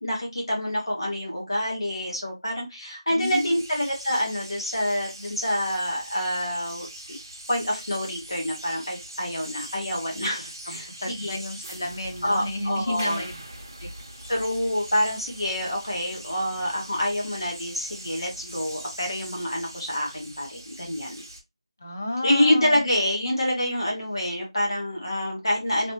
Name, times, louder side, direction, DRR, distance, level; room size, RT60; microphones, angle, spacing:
voice 1, 0.0-7.2 7.5-11.4 12.2-13.2 14.3-21.2 22.2-25.9, left 1 dB, 50° left, 1.2 m, -27 dB
voice 2, 3.2-3.5 10.7-13.4 13.8-13.9 21.8-22.8, left 1 dB, 25° left, 0.4 m, -30 dB
sound 1, 3.2-21.4, right 1 dB, 30° right, 0.8 m, -42 dB
3.0 x 2.9 x 3.0 m
figure-of-eight pair, 180°, 3 cm